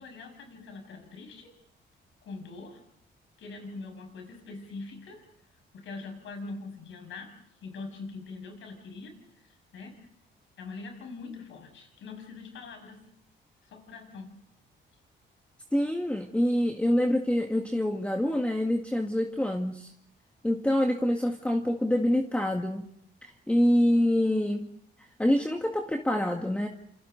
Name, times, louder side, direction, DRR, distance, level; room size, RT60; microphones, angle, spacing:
voice 1, 0.0-1.5 2.2-2.8 3.4-5.2 5.7-10.1 10.6-13.1 13.6-14.4, left 3 dB, 75° left, 5 dB, 6.5 m, -43 dB
voice 2, 15.7-19.9 20.4-22.9 23.2-24.7 25.0-26.7, left 1 dB, 5° left, 3 dB, 1.9 m, -26 dB
30.0 x 28.0 x 4.0 m, 0.69 s
cardioid pair, 90°, 20 cm